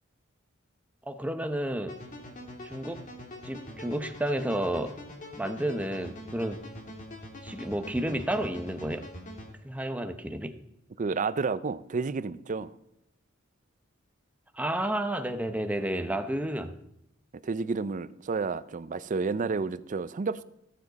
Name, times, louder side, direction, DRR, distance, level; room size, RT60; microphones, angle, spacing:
voice 1, 1.1-2.0 2.6-3.0 3.4-5.0 5.4-6.6 7.4-9.1 9.6-10.6 14.5-16.8, right 1 dB, 5° right, 8 dB, 0.8 m, -31 dB
sound 1, 1.9-9.5, left 1 dB, 40° left, 2.4 m, -43 dB
voice 2, 11.0-12.7 17.4-20.4, right 4 dB, 40° right, 16 dB, 0.4 m, -30 dB
18.0 x 7.4 x 4.1 m, 0.80 s
head